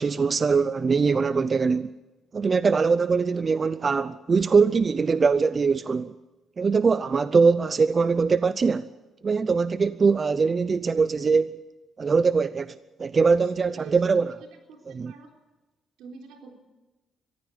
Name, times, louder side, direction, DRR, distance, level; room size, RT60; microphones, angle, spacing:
voice 1, 0.0-1.9 2.3-6.1 6.6-8.9 9.2-11.6 12.0-14.3 14.9-15.1, right 5 dB, 35° right, 0.6 m, -22 dB
voice 2, 13.6-14.3 14.7-15.3 16.0-16.6, right 5 dB, 90° right, 3.8 m, -45 dB
22.5 x 14.5 x 7.9 m
cardioid pair, 90°, 0 cm